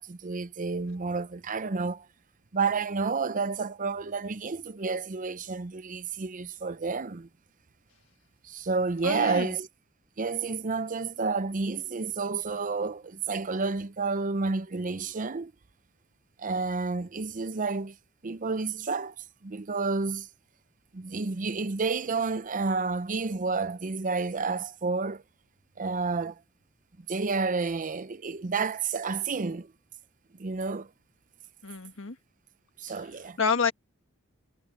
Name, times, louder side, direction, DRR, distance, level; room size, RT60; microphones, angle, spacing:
voice 1, 0.0-2.1 2.5-7.3 8.4-9.7 10.2-15.5 16.4-18.0 18.2-19.2 19.4-20.3 20.9-25.2 25.8-26.4 27.1-29.7 30.4-30.9 32.8-33.4, right 4 dB, 40° right, 0.6 m, -30 dB
voice 2, 9.0-9.5 31.6-32.1 33.4-33.7, left 5 dB, 70° left, 1.5 m, -28 dB
head